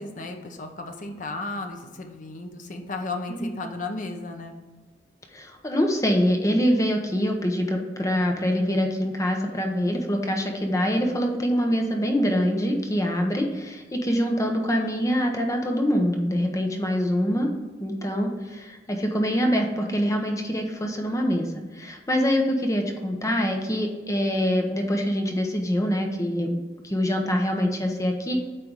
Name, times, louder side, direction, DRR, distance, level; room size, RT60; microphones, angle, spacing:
voice 1, 0.0-4.6, left 2 dB, 45° left, 5 dB, 0.8 m, -34 dB
voice 2, 3.3-3.7 5.3-17.5 17.8-21.5 21.7-26.6 26.8-28.4, equal, 20° left, 2 dB, 0.8 m, -24 dB
8.7 x 3.4 x 4.8 m, 1.3 s
head